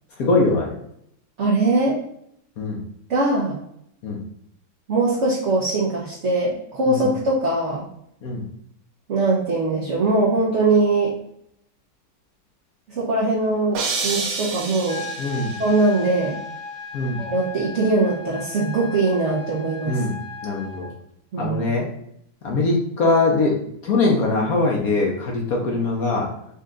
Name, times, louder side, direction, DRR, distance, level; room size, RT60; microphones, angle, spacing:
voice 1, 0.2-0.7 2.6-2.8 4.0-4.2 6.9-7.1 8.2-8.4 15.2-15.5 16.9-17.2 19.8-20.1 20.4-20.9 21.4-21.9 22.4-23.5 23.8-26.3, left 3 dB, 60° left, -1 dB, 1.2 m, -22 dB
voice 2, 1.4-2.0 3.1-3.6 4.9-7.9 9.1-11.1 12.9-15.0 15.6-16.4 17.2-20.0 21.3-21.7 25.6-25.7, right 2 dB, 50° right, -5 dB, 1.0 m, -21 dB
sound 1, 13.7-15.8, right 4 dB, 70° right, 1.4 m, -28 dB
sound 2, 14.9-20.9, left 4 dB, 20° left, 0.9 m, -36 dB
5.5 x 2.5 x 3.8 m, 0.72 s
omnidirectional pair, 2.0 m